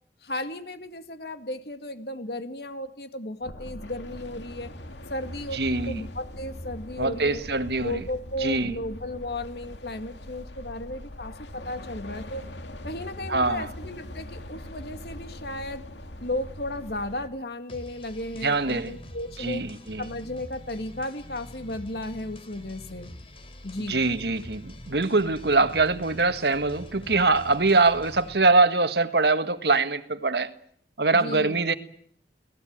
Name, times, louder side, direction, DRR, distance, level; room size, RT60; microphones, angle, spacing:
voice 1, 0.2-4.7 5.1-7.4 7.8-12.4 12.8-15.8 16.2-19.7 20.0-23.1 23.6-24.0 31.1-31.6, left 1 dB, 65° left, 2.3 m, -34 dB
sound 1, 3.4-17.3, left 1 dB, 85° left, 2.5 m, -41 dB
voice 2, 5.5-6.0 7.0-8.1 8.4-8.8 13.3-13.7 18.4-19.0 19.4-20.1 23.8-30.5 31.0-31.7, right 3 dB, 70° right, 1.7 m, -23 dB
sound 2, 17.7-28.4, left 1 dB, 30° left, 3.8 m, -45 dB
29.5 x 19.0 x 8.9 m
head